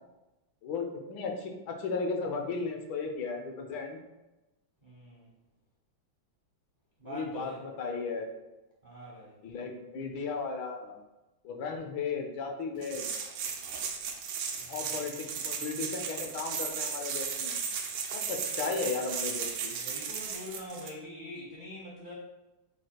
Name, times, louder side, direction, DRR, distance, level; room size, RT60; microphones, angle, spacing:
voice 1, 0.6-4.0 7.0-8.3 9.4-11.0 11.4-13.1 14.7-17.6 18.1-19.7, left 4 dB, 80° left, 3 dB, 1.5 m, -35 dB
voice 2, 4.8-5.3 7.0-7.6 8.8-9.3 14.5-14.8 19.7-22.1, left 1 dB, 50° right, -5 dB, 0.5 m, -44 dB
sound 1, 12.8-20.9, right 6 dB, 85° right, 0.8 m, -35 dB
4.7 x 2.4 x 4.4 m, 1.0 s
omnidirectional pair, 2.2 m